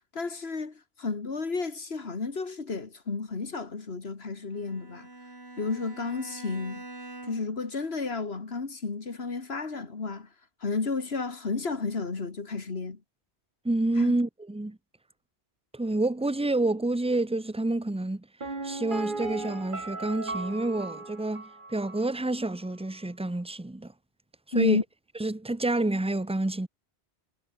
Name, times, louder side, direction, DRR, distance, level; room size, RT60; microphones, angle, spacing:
voice 1, 0.1-5.1 5.6-6.9 7.2-10.3 10.6-13.0 14.0-14.2 24.5-24.8, left 4 dB, 70° left, 2.3 m, -32 dB
Bowed string instrument, 4.5-7.6, right 2 dB, 75° right, 4.4 m, -44 dB
voice 2, 13.6-14.8 15.7-18.3 18.6-23.9 24.5-24.8 25.2-26.7, right 2 dB, 5° right, 0.7 m, -28 dB
Piano, 18.4-22.2 22.4-22.5, right 3 dB, 50° right, 2.5 m, -37 dB
omnidirectional pair, 1.1 m